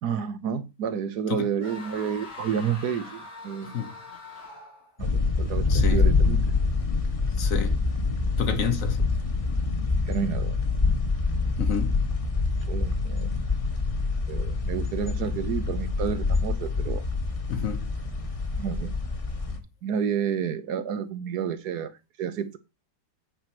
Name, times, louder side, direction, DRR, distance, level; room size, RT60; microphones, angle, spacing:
voice 1, 0.0-3.8 5.0-6.4 10.1-10.6 12.7-13.3 14.3-17.0 18.6-18.9 19.8-22.6, right 7 dB, 75° right, 1.4 m, -30 dB
sound 1, 1.6-5.0, left 3 dB, 90° left, 3.0 m, -43 dB
voice 2, 3.6-3.9 5.7-6.1 7.4-7.8 8.4-9.1 11.6-12.0 17.5-17.9, left 7 dB, 60° left, 1.3 m, -30 dB
sound 2, 5.0-19.6, left 3 dB, 25° left, 1.1 m, -26 dB
8.7 x 4.6 x 6.1 m
omnidirectional pair, 1.8 m